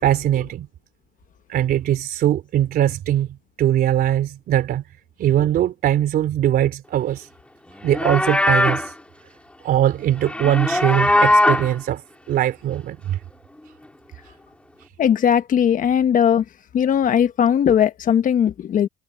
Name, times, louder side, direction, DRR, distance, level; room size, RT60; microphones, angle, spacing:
voice 1, 0.0-0.7 1.5-3.3 3.6-4.8 5.2-7.3 7.8-8.9 9.6-13.2 14.8-14.9, right 11 dB, 65° right, 3.5 m, -21 dB
Livestock farm animals working animals, 7.8-8.9 10.2-11.7, left 1 dB, 5° left, 2.9 m, -19 dB
voice 2, 15.0-16.4 16.7-18.9, left 9 dB, 50° left, 1.3 m, -18 dB
cardioid pair, 110°, 17 cm